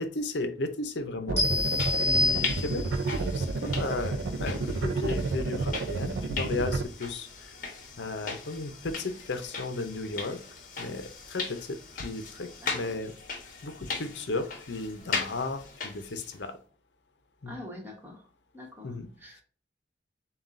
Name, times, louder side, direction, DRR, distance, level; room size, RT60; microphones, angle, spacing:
voice 1, 0.0-1.7 1.9-7.6 8.0-10.4 10.8-13.1 13.6-16.6 17.4-17.6 18.8-19.1, left 3 dB, 70° left, 8 dB, 0.7 m, -35 dB
sound 1, 1.3-6.8, right 3 dB, 80° right, 0.5 m, -30 dB
sound 2, 1.4-3.1, left 2 dB, 15° left, 1.4 m, -27 dB
sound 3, 1.5-16.4, left 4 dB, 50° left, 1.1 m, -39 dB
voice 2, 12.6-12.9 17.4-18.2 18.5-18.9 19.2-19.4, left 1 dB, 10° right, -1 dB, 1.2 m, -44 dB
6.9 x 2.3 x 2.6 m, 0.42 s
head